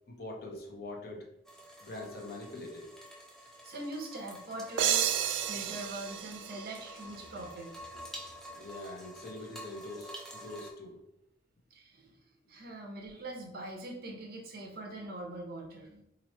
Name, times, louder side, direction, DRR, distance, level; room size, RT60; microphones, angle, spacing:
voice 1, 0.1-1.3 1.8-3.0 8.5-11.0, left 2 dB, 50° left, 0 dB, 0.8 m, -43 dB
sound 1, 1.4-10.7, equal, 5° left, 0.5 m, -49 dB
voice 2, 3.4-5.1 5.4-7.7 11.7-12.1 12.5-16.0, right 2 dB, 50° right, 1 dB, 0.8 m, -42 dB
sound 2, 4.8-7.4, right 10 dB, 70° right, 0.3 m, -32 dB
3.1 x 2.7 x 4.2 m, 0.82 s
head